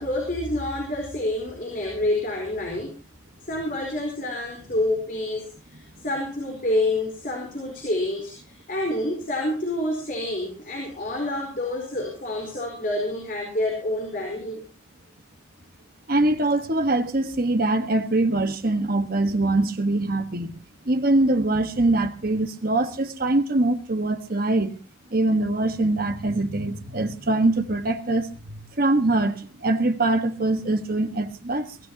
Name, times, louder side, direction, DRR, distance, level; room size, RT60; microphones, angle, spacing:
voice 1, 0.0-2.9 3.4-14.6, left 1 dB, 45° left, 4.3 m, -28 dB
voice 2, 16.1-20.5 20.8-24.7 25.1-31.8, right 2 dB, 45° right, 1.4 m, -23 dB
23.0 x 16.5 x 2.9 m
head